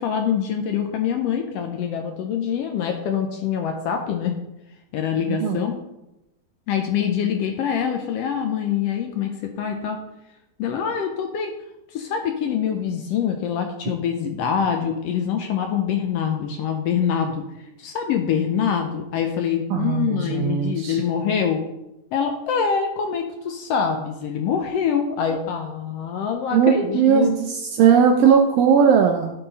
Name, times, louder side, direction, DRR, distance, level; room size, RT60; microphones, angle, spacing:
voice 1, 0.0-4.3 4.9-5.8 6.7-10.0 10.6-11.5 11.9-21.6 22.1-27.4, left 7 dB, 90° left, 4 dB, 1.4 m, -25 dB
voice 2, 5.3-5.7 19.7-21.0 26.5-29.3, right 7 dB, 90° right, 3 dB, 1.4 m, -18 dB
11.0 x 3.8 x 4.0 m, 0.91 s
omnidirectional pair, 3.5 m